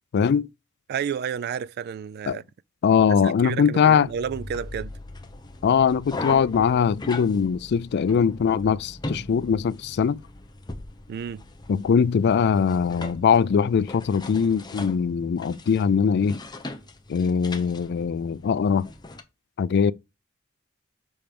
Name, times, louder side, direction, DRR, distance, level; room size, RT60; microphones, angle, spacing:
voice 1, 0.1-0.5 2.3-2.4 2.8-4.1 5.6-10.2 11.7-16.4 17.1-18.9 19.6-19.9, left 6 dB, 55° left, 0.3 m, -21 dB
voice 2, 0.9-2.4 3.2-4.9 11.1-11.4, right 7 dB, 50° right, 0.3 m, -31 dB
sound 1, 4.0-19.2, left 2 dB, 20° left, 0.9 m, -39 dB
7.1 x 4.5 x 5.2 m
head